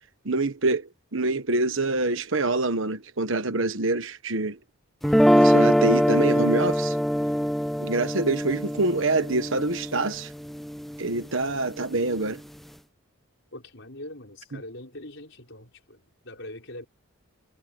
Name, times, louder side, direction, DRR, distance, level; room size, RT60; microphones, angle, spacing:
voice 1, 0.2-4.6 5.3-7.0 7.8-10.3 11.0-12.4 14.5-14.6, right 2 dB, 60° right, 1.3 m, -26 dB
sound 1, 5.0-11.1, equal, ahead, 0.6 m, -23 dB
voice 2, 13.5-16.9, left 1 dB, 55° left, 6.3 m, -42 dB
head